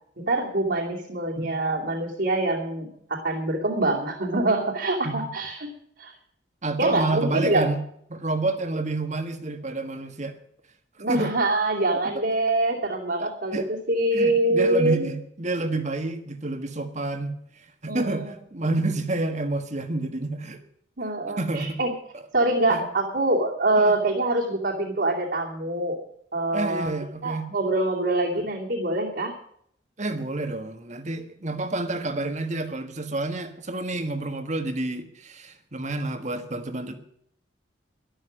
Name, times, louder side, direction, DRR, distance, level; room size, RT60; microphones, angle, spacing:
voice 1, 0.2-5.7 6.0-6.1 6.8-7.7 11.0-15.1 17.9-18.3 18.6-18.7 21.0-21.9 22.3-26.0 26.3-26.9 27.2-29.3, right 2 dB, 60° right, -3 dB, 2.8 m, -25 dB
voice 2, 6.6-7.8 8.1-10.4 11.1-11.4 11.9-12.2 13.2-13.8 14.1-20.6 21.4-21.8 22.1-22.2 22.7-22.9 23.8-24.0 26.5-27.5 30.0-37.0, right 2 dB, 40° right, 9 dB, 1.6 m, -29 dB
13.0 x 12.0 x 6.3 m, 0.66 s
head